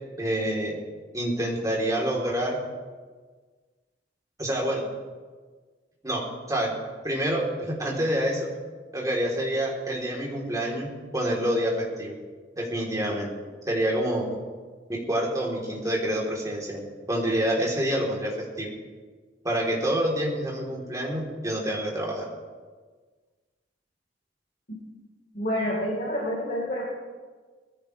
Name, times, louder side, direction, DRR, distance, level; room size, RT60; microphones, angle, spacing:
voice 1, 0.2-0.8 1.1-2.6 4.4-4.9 6.0-6.7 7.0-8.5 8.9-12.1 12.6-13.3 13.7-14.3 15.1-18.7 19.4-22.3, right 1 dB, 20° right, -3 dB, 3.5 m, -27 dB
voice 2, 25.3-26.8, equal, 50° left, -6 dB, 4.3 m, -28 dB
21.5 x 15.0 x 3.4 m, 1.4 s
head